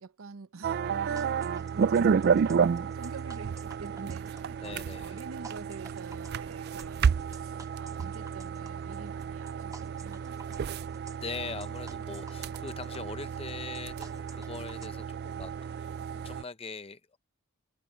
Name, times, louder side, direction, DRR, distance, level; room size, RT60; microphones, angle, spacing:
voice 1, 0.0-10.5, right 4 dB, 85° right, 0.8 m, -47 dB
sound 1, 0.6-16.4, right 6 dB, 50° right, 0.3 m, -31 dB
sound 2, 1.2-14.9, right 4 dB, 15° right, 0.9 m, -51 dB
voice 2, 4.6-5.2 10.9-17.2, left 4 dB, 30° left, 0.8 m, -42 dB
head